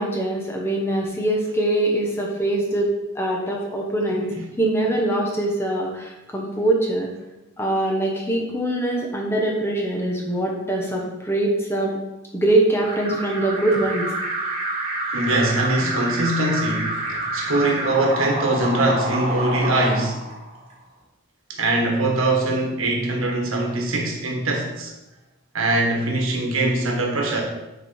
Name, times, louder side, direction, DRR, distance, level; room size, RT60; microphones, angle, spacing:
voice 1, 0.0-4.3 4.6-7.1 7.6-11.9 12.3-14.1, right 1 dB, 10° left, -1 dB, 0.9 m, -23 dB
Alarm, 12.8-20.7, right 2 dB, 30° right, 1.6 m, -28 dB
voice 2, 15.1-20.2 21.5-24.9 25.5-27.4, right 2 dB, 90° right, 1 dB, 1.5 m, -22 dB
6.9 x 4.7 x 4.3 m, 1.0 s
head